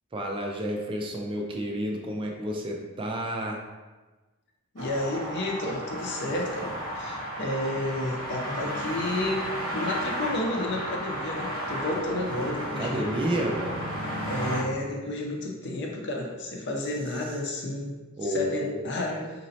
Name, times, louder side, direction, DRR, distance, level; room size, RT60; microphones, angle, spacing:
voice 1, 0.1-3.6 12.8-13.8 18.2-18.8, equal, 25° right, 1 dB, 0.4 m, -30 dB
voice 2, 4.7-9.4 9.7-13.0 14.3-19.3, left 1 dB, 60° left, 0 dB, 0.6 m, -31 dB
sound 1, 4.8-14.6, equal, 90° right, 1.0 m, -33 dB
4.0 x 3.0 x 2.7 m, 1.2 s
head